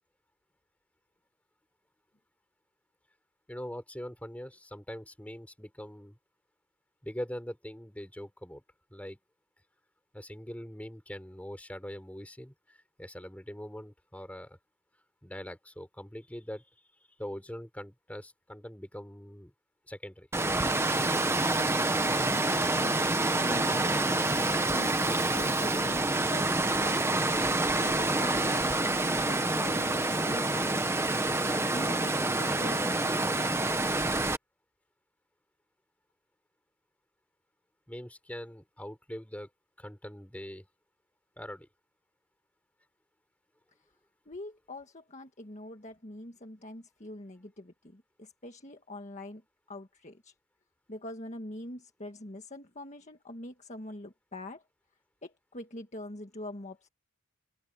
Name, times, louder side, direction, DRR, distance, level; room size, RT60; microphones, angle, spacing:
voice 1, 3.5-6.2 7.0-8.6 8.9-9.2 10.1-14.6 15.2-19.5 19.9-20.3 37.9-39.5 39.8-40.7 41.4-41.7, equal, 5° left, 4.2 m, -42 dB
Water, 20.3-34.4, right 2 dB, 10° right, 1.1 m, -27 dB
voice 2, 22.3-23.0 23.4-31.1 31.7-33.6 44.3-49.4 49.7-50.3 50.9-54.6 55.2-56.9, left 1 dB, 30° left, 1.7 m, -44 dB
open air
head